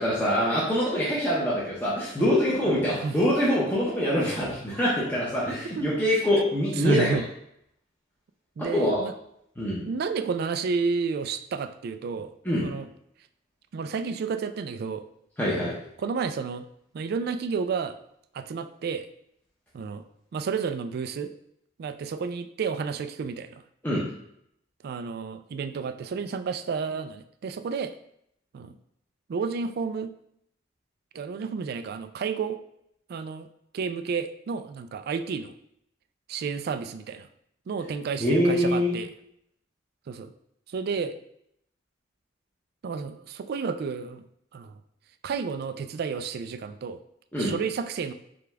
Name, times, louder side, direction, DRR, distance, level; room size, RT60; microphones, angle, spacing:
voice 1, 0.0-7.2 8.7-9.0 9.6-9.8 12.4-12.7 15.4-15.7 23.8-24.0 38.2-39.0 47.3-47.5, equal, 10° left, -8 dB, 0.8 m, -24 dB
voice 2, 2.8-3.2 4.2-4.4 5.8-5.9 6.8-7.3 8.6-9.1 9.9-12.3 12.6-12.9 13.7-15.0 16.0-16.6 16.9-18.0 18.3-19.1 19.7-20.0 20.3-21.3 21.8-23.6 24.8-27.9 28.5-28.7 29.3-30.1 31.1-32.6 33.1-33.5 33.7-35.5 36.3-37.3 37.7-39.1 40.1-40.3 40.7-41.1 42.8-44.2 44.5-44.8 45.2-47.0 47.4-48.1, right 5 dB, 55° right, 10 dB, 0.3 m, -31 dB
5.0 x 2.3 x 3.4 m, 0.74 s
head